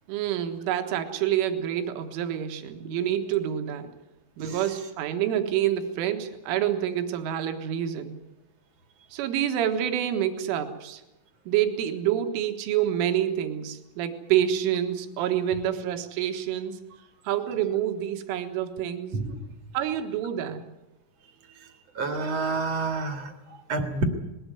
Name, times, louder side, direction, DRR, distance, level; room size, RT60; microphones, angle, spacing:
voice 1, 0.1-3.9 4.4-8.2 9.1-11.0 11.5-16.8 17.3-19.2 19.7-20.7, right 10 dB, 85° right, 6 dB, 3.9 m, -27 dB
voice 2, 22.0-23.3 23.7-24.0, right 3 dB, 55° right, 6 dB, 1.8 m, -28 dB
20.5 x 17.0 x 9.4 m, 0.96 s
omnidirectional pair, 5.7 m